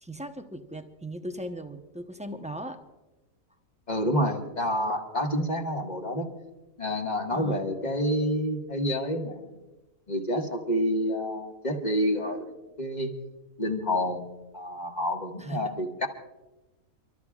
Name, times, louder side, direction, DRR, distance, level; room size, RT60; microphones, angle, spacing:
voice 1, 0.0-2.8 7.3-7.7 15.4-15.7, right 1 dB, 5° right, 5 dB, 0.6 m, -38 dB
voice 2, 3.9-6.3 6.8-9.4 10.1-13.1 13.6-16.1, equal, 30° left, 1 dB, 1.8 m, -28 dB
30.0 x 13.0 x 2.4 m, 1.1 s
omnidirectional pair, 1.5 m